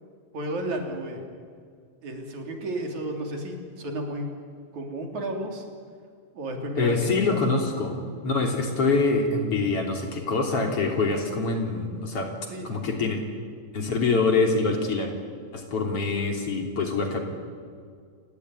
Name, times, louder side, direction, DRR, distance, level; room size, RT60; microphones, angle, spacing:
voice 1, 0.3-1.2 2.0-4.3 4.7-5.7 6.3-7.4 12.5-12.7, right 1 dB, 75° right, 2 dB, 4.8 m, -32 dB
voice 2, 6.8-7.9 8.2-12.3 12.6-13.2 13.7-15.1 15.5-17.2, left 3 dB, 50° left, 2 dB, 4.1 m, -25 dB
29.5 x 18.5 x 9.7 m, 2.1 s
omnidirectional pair, 3.4 m